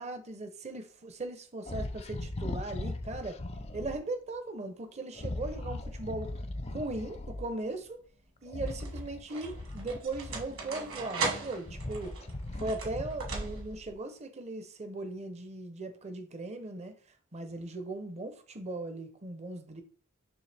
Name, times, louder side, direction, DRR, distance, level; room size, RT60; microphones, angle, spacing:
voice 1, 0.0-3.4 3.7-6.4 6.7-8.0 8.4-12.2 12.6-19.8, right 2 dB, 30° right, 0.6 m, -38 dB
sound 1, 1.6-4.0 5.1-7.5 8.5-10.8 11.3-13.7, left 2 dB, 30° left, 0.5 m, -39 dB
sound 2, 7.1-7.6 8.4-13.9, right 3 dB, 65° right, 1.7 m, -38 dB
9.3 x 3.2 x 3.3 m
head